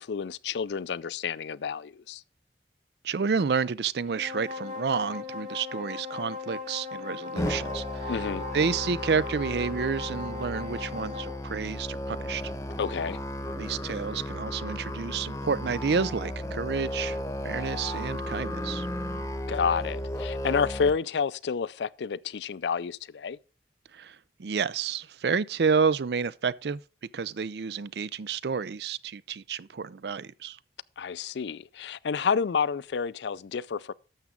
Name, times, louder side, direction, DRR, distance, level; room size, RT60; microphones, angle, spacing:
voice 1, 0.0-2.2 8.1-8.5 12.8-13.2 19.5-23.4 31.0-33.9, left 6 dB, 80° left, 0.4 m, -29 dB
voice 2, 3.0-8.2 8.5-12.5 13.5-17.2 17.4-18.9 23.9-26.8 27.1-30.6, right 5 dB, 70° right, 0.5 m, -30 dB
sound 1, 4.0-11.4, left 5 dB, 45° right, 3.1 m, -38 dB
Musical instrument, 7.4-20.9, left 1 dB, 15° left, 0.9 m, -34 dB
12.0 x 7.2 x 3.8 m
head